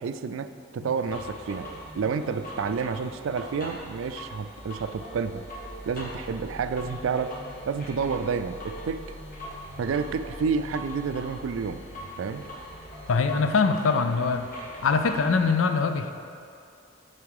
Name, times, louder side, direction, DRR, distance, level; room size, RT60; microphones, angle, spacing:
voice 1, 0.0-5.4 5.9-7.4 7.7-9.1 9.8-11.8 12.2-12.5, right 5 dB, 85° right, 11 dB, 0.3 m, -30 dB
sound 1, 1.0-15.5, equal, 45° left, 1.5 m, -41 dB
voice 2, 13.1-14.5 14.8-16.1, left 4 dB, 90° left, 8 dB, 0.5 m, -23 dB
8.5 x 4.4 x 4.8 m, 2.5 s
head